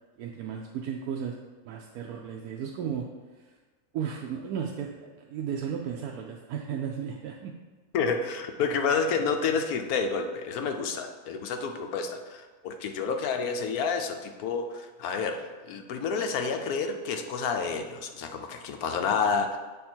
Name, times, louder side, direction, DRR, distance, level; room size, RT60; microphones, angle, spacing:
voice 1, 0.2-1.3 1.6-3.1 3.4-3.5 3.9-7.5, right 7 dB, 85° right, 1 dB, 1.1 m, -34 dB
voice 2, 7.9-19.6, left 5 dB, 85° left, 5 dB, 1.1 m, -29 dB
7.7 x 3.6 x 4.3 m, 1.3 s
omnidirectional pair, 1.5 m